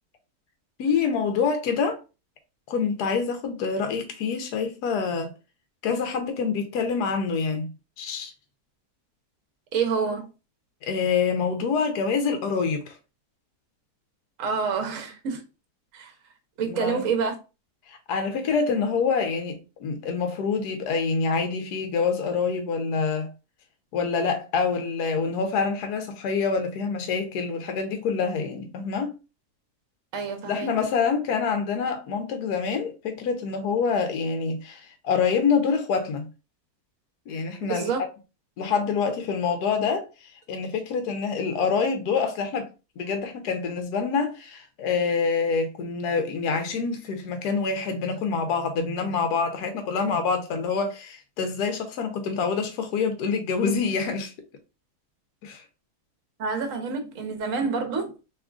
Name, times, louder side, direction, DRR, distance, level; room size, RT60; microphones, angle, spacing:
voice 1, 0.8-2.0 2.7-5.3 5.8-7.7 8.0-8.3 10.8-13.0 16.6-17.0 17.9-23.3 23.9-29.1 30.5-36.3 37.3-37.9 38.6-42.7 43.0-54.3 55.4-55.6, left 5 dB, 85° left, 1.2 m, -26 dB
voice 2, 9.7-10.3 14.4-15.4 15.9-16.1 16.6-17.4 30.1-30.7 37.6-38.0 56.4-58.1, right 5 dB, 60° right, 1.1 m, -27 dB
3.6 x 3.1 x 2.3 m
omnidirectional pair, 1.7 m